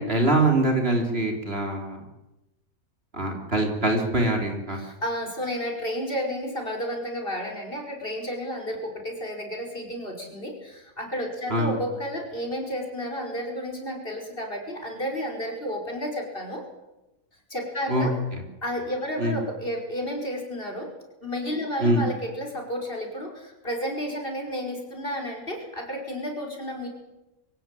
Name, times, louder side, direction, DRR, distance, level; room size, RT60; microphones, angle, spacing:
voice 1, 0.0-2.0 3.1-4.8 11.5-11.8 17.9-18.1 19.2-19.4 21.8-22.0, right 2 dB, 45° right, 3 dB, 3.5 m, -23 dB
voice 2, 4.7-16.6 17.5-18.2 18.6-20.9 21.2-26.9, equal, 40° left, 1 dB, 5.6 m, -32 dB
24.0 x 16.0 x 9.1 m, 0.98 s
omnidirectional pair, 1.5 m